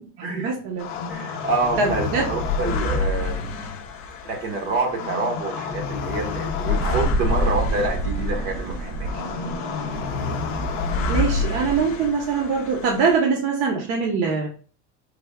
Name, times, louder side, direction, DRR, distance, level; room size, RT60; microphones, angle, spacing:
voice 1, 0.3-0.9 1.8-2.3 11.1-14.5, right 5 dB, 50° right, -1 dB, 0.7 m, -23 dB
sound 1, 0.8-13.2, left 4 dB, 45° left, 0.4 m, -28 dB
voice 2, 1.1-3.5 4.2-9.1, right 3 dB, 70° right, 3 dB, 1.2 m, -27 dB
sound 2, 6.7-11.8, right 2 dB, 85° right, 0.6 m, -29 dB
3.4 x 2.2 x 3.4 m, 0.40 s
cardioid pair, 160°, 32 cm